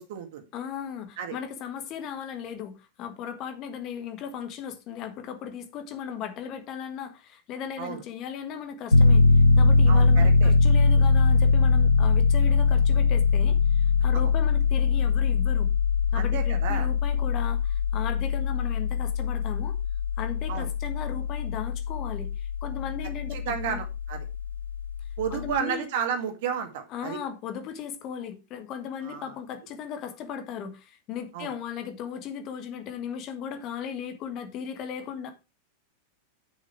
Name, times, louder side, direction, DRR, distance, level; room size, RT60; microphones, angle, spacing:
voice 1, 0.0-0.4 1.2-1.4 7.8-8.0 9.9-10.5 16.1-16.9 20.5-20.7 23.3-24.3 25.2-27.2 29.0-29.3 31.3-31.5, right 7 dB, 50° right, 2.0 m, -32 dB
voice 2, 0.5-9.2 9.6-15.7 16.1-19.7 20.2-23.8 25.3-25.9 26.9-35.3, left 8 dB, 35° left, 1.6 m, -37 dB
Piano, 8.9-25.6, left 4 dB, 80° left, 0.5 m, -22 dB
9.0 x 6.7 x 4.6 m
figure-of-eight pair, 90°, 0 cm